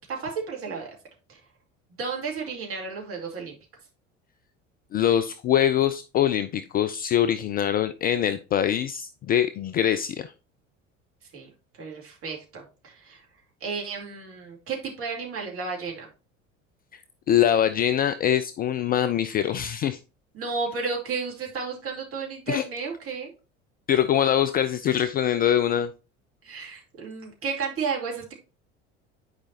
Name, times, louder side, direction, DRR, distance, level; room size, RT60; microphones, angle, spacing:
voice 1, 0.1-0.9 1.3-1.4 2.0-3.6 11.3-11.5 11.8-13.2 13.6-16.1 20.3-23.3 26.4-28.3, right 4 dB, 40° right, 0 dB, 2.5 m, -32 dB
voice 2, 4.9-10.3 16.9-17.0 17.3-20.0 22.5-22.6 23.9-25.9, left 10 dB, 25° left, 12 dB, 0.3 m, -23 dB
9.6 x 4.9 x 2.8 m, 0.32 s
figure-of-eight pair, 65°, 37 cm